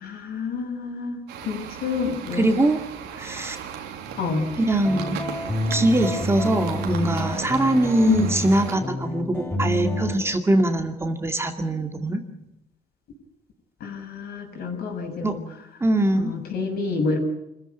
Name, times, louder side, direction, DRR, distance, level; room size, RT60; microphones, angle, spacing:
voice 1, 0.0-2.5 4.2-4.5 8.1-8.3 13.8-15.4 16.1-17.2, left 4 dB, 65° left, 4 dB, 6.5 m, -28 dB
sound 1, 1.3-8.8, right 8 dB, 85° right, 3.3 m, -36 dB
voice 2, 2.3-2.8 3.2-3.6 4.6-5.2 5.7-12.2 15.2-15.3 15.8-16.4, right 1 dB, 15° right, 5 dB, 2.3 m, -22 dB
sound 2, 4.8-10.2, left 1 dB, 10° left, 6.3 m, -29 dB
26.0 x 15.0 x 9.2 m, 0.86 s
cardioid pair, 110°, 17 cm